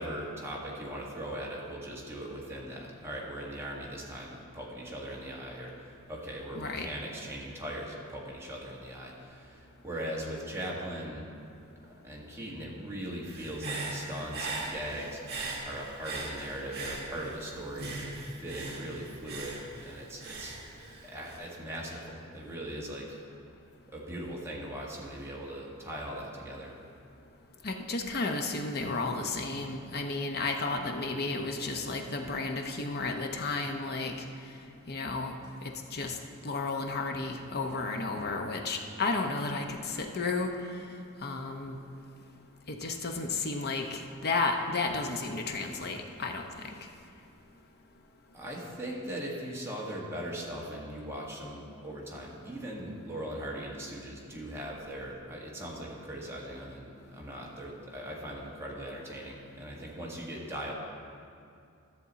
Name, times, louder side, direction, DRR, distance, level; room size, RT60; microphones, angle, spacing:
voice 1, 0.0-11.3 11.8-15.2 15.6-23.2 23.9-26.7 48.3-60.7, right 1 dB, 10° right, -4 dB, 1.5 m, -40 dB
voice 2, 6.5-6.9 27.6-34.1 34.9-35.4 35.6-36.2 36.4-40.5 41.2-41.8 42.7-46.4, left 3 dB, 50° left, 4 dB, 0.8 m, -32 dB
Human voice / Breathing, 13.3-17.4 17.8-21.4, right 2 dB, 50° right, 1.7 m, -39 dB
13.5 x 6.8 x 4.1 m, 2.5 s
head